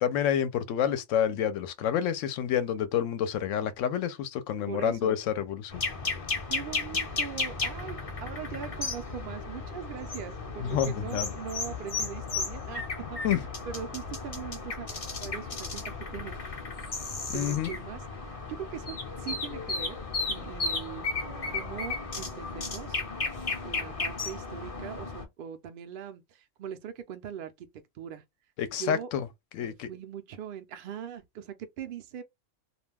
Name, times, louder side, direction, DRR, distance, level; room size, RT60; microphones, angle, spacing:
voice 1, 0.0-5.8 10.6-11.3 13.2-13.4 17.3-17.7 28.6-29.3 29.5-29.9, left 9 dB, 80° left, 0.9 m, -28 dB
voice 2, 4.7-5.2 6.5-12.8 13.1-13.2 13.6-14.9 15.2-15.8 16.1-16.3 17.2-20.0 20.3-21.0 21.5-23.0 23.6-27.7 27.9-28.2 28.8-29.1 29.6-32.2, right 8 dB, 55° right, 0.6 m, -41 dB
sound 1, 5.7-25.2, left 4 dB, 35° left, 0.6 m, -34 dB
2.4 x 2.2 x 3.3 m
omnidirectional pair, 1.3 m